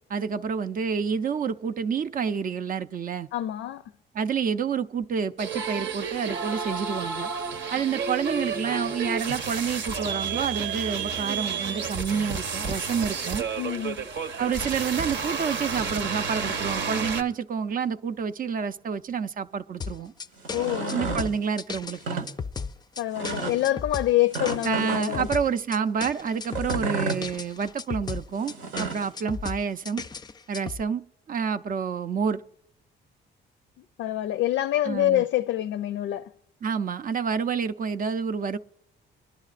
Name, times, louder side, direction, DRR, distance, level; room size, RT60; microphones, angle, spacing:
voice 1, 0.1-3.3 4.1-7.3 7.7-13.4 14.4-20.1 20.9-22.3 24.6-28.5 28.8-30.0 30.5-32.4 34.8-35.3 36.6-38.6, right 6 dB, 45° right, 0.5 m, -28 dB
voice 2, 3.3-3.8 13.6-14.0 20.5-21.0 23.0-25.3 34.0-36.3, left 14 dB, 80° left, 0.4 m, -26 dB
sound 1, 5.4-17.2, right 5 dB, 65° right, 0.9 m, -31 dB
sound 2, 19.8-30.8, left 5 dB, 20° left, 0.4 m, -36 dB
sound 3, 20.4-21.3 21.9-22.3 23.2-23.6 24.3-25.3 26.5-27.2 28.4-29.1, right 3 dB, 85° right, 1.3 m, -32 dB
21.5 x 11.0 x 2.5 m
cardioid pair, 90°, 20 cm